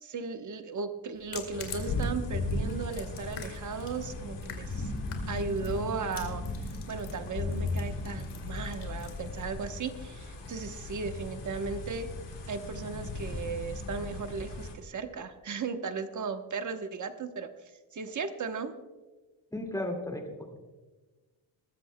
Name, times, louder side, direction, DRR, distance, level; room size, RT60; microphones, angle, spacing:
voice 1, 0.0-4.9 5.3-6.4 6.9-12.1 12.5-17.5 17.9-18.7, right 5 dB, 40° right, 7 dB, 1.0 m, -36 dB
sound 1, 1.1-11.9, left 6 dB, 90° left, 2.4 m, -48 dB
sound 2, 1.5-14.7, left 2 dB, 60° left, 2.9 m, -36 dB
voice 2, 19.5-20.8, left 1 dB, 5° left, 3 dB, 2.1 m, -36 dB
21.0 x 14.0 x 2.2 m, 1.2 s
cardioid pair, 135°, 48 cm